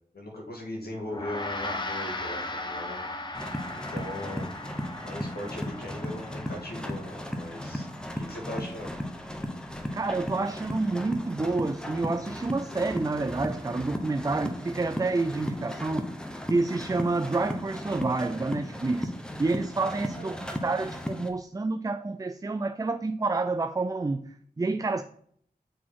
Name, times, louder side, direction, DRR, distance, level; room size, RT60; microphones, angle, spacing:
voice 1, 0.1-3.1 3.7-4.5 5.0-7.9 8.1-9.0 20.1-20.4, left 1 dB, 80° left, 1 dB, 1.8 m, -39 dB
Gong, 1.1-10.6, left 2 dB, 30° left, 0.9 m, -39 dB
sound 1, 3.3-21.3, equal, 5° left, 0.9 m, -36 dB
voice 2, 9.9-16.1 16.5-19.1 19.4-25.0, right 3 dB, 20° right, 9 dB, 0.4 m, -29 dB
6.1 x 4.1 x 4.6 m, 0.62 s
wide cardioid pair, 80°, 16 cm